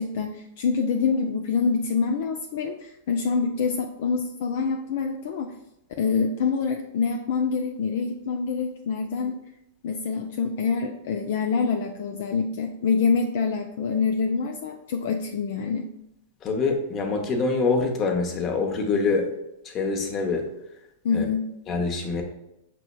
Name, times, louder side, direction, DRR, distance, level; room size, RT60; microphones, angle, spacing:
voice 1, 0.0-5.5 6.0-9.4 9.8-15.9 21.0-21.5, left 5 dB, 60° left, 4 dB, 0.3 m, -26 dB
voice 2, 16.4-19.3 19.7-20.5 21.1-21.2 21.7-22.2, left 4 dB, 30° left, 3 dB, 0.8 m, -25 dB
6.0 x 2.9 x 2.2 m, 0.86 s
hypercardioid pair, 100°, 0 cm